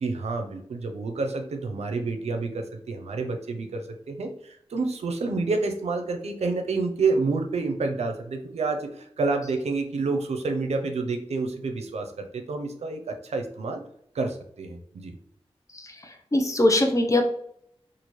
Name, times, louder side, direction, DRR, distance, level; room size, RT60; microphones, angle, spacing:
voice 1, 0.0-13.8 14.1-15.1, right 3 dB, 85° right, 5 dB, 0.5 m, -29 dB
voice 2, 15.7-17.3, left 1 dB, 30° left, 4 dB, 0.7 m, -23 dB
4.4 x 2.4 x 3.0 m, 0.69 s
wide cardioid pair, 70°, 11 cm